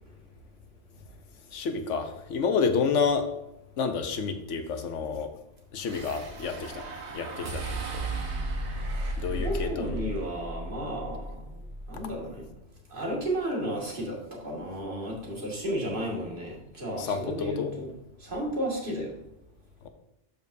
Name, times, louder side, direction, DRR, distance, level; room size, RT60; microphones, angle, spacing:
voice 1, 1.5-3.3 3.8-5.3 5.7-6.9 7.1-8.1 9.2-10.0 17.0-17.7, left 5 dB, 75° left, 8 dB, 1.1 m, -29 dB
sound 1, 5.8-12.2, right 2 dB, 60° right, 1.2 m, -35 dB
voice 2, 9.0-11.3 11.9-12.4 12.9-17.9 18.2-19.1, equal, 45° right, -2 dB, 2.1 m, -33 dB
12.0 x 5.2 x 2.6 m, 0.85 s
omnidirectional pair, 1.3 m